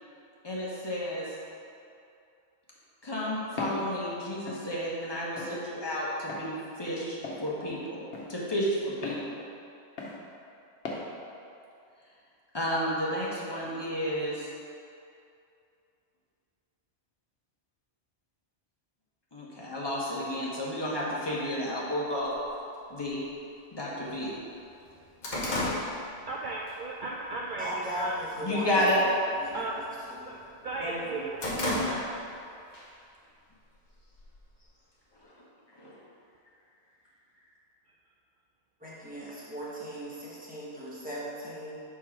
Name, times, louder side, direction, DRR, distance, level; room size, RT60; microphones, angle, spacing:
voice 1, 0.4-1.3 3.0-8.0 8.3-9.4 12.5-14.5 19.3-22.3 22.9-23.2 23.7-24.3 28.4-29.0 30.8-31.2 35.2-35.3 35.7-36.0, equal, 25° left, -6 dB, 1.2 m, -31 dB
Walk footsteps, 3.6-3.9 4.5-4.6 5.4-5.5 6.3-6.5 7.2-7.4 8.1-8.3 9.0-9.2 10.0-10.2 10.8-11.0, left 3 dB, 85° left, 1.2 m, -36 dB
sound 1, 22.4-22.5 23.4-23.5 23.9-24.0 24.4-26.8 27.2-27.5 27.9-28.4 28.7-29.0 29.3-30.5 30.9-32.4 32.7-32.9 33.8-34.6, left 1 dB, 45° left, 1.1 m, -33 dB
voice 2, 26.3-28.2 29.5-29.8 30.2-30.4 30.6-32.0, right 2 dB, 60° right, -3 dB, 0.6 m, -36 dB
voice 3, 27.6-28.8 29.4-30.4 38.8-41.8, equal, 10° right, -9 dB, 1.4 m, -38 dB
4.5 x 4.3 x 5.8 m, 2.5 s
omnidirectional pair, 1.1 m